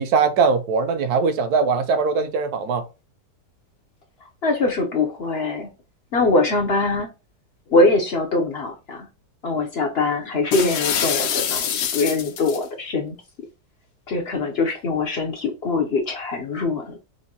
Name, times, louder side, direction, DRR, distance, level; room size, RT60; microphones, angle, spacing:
voice 1, 0.0-2.8, right 5 dB, 65° right, 1.2 m, -21 dB
voice 2, 4.4-5.7 6.1-7.1 7.7-9.1 9.4-13.1 14.1-17.0, left 3 dB, 60° left, 0.6 m, -22 dB
sound 1, 10.5-12.6, left 8 dB, 85° left, 1.4 m, -25 dB
6.1 x 2.5 x 2.8 m
omnidirectional pair, 1.9 m